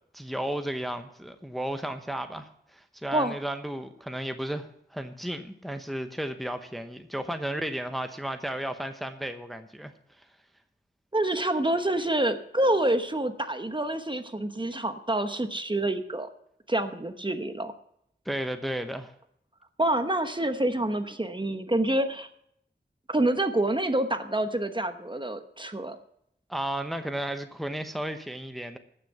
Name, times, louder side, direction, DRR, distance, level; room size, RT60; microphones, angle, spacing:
voice 1, 0.1-10.3 18.2-19.1 26.5-28.8, right 1 dB, ahead, 7 dB, 0.9 m, -34 dB
voice 2, 11.1-16.3 16.7-17.7 19.8-22.3 23.1-26.0, right 1 dB, 25° right, 8 dB, 1.0 m, -27 dB
14.5 x 6.4 x 6.9 m, 0.74 s
cardioid pair, 40°, 19 cm